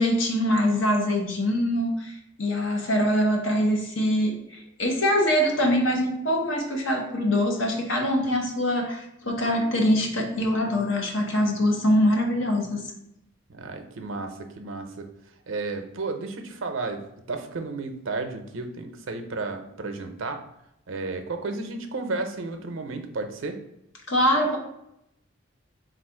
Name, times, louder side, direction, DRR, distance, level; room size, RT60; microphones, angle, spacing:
voice 1, 0.0-12.8 24.1-24.6, equal, 75° left, 1 dB, 0.9 m, -23 dB
voice 2, 13.5-15.1 15.5-20.4 20.9-23.6, right 3 dB, 80° right, 6 dB, 0.6 m, -33 dB
3.9 x 2.4 x 4.6 m, 0.81 s
head